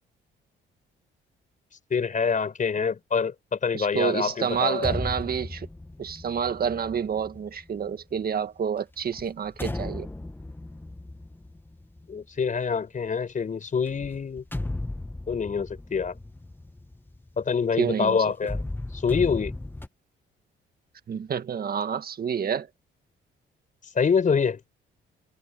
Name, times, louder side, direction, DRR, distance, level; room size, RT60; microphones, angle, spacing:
voice 1, 1.9-4.9 12.1-14.4 15.3-16.1 17.4-18.6 18.9-19.5 23.9-24.6, left 6 dB, 40° left, 4.8 m, -26 dB
voice 2, 3.7-5.7 6.0-10.1 17.8-18.2 21.1-22.7, right 7 dB, 50° right, 1.7 m, -28 dB
sound 1, 4.5-8.2 9.0-12.6 13.9-17.9 18.4-19.9, left 2 dB, 10° left, 1.6 m, -36 dB
cardioid pair, 90°, 20 cm